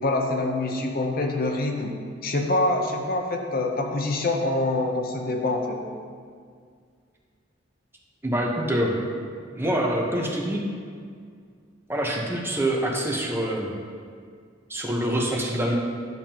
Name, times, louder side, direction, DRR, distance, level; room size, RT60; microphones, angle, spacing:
voice 1, 0.0-1.9 2.2-5.8, left 2 dB, 50° left, 2 dB, 0.7 m, -25 dB
voice 2, 8.2-8.9 9.5-10.6 11.9-13.7 14.7-15.8, right 1 dB, 10° right, -1 dB, 0.9 m, -25 dB
10.5 x 7.0 x 2.9 m, 2.1 s
head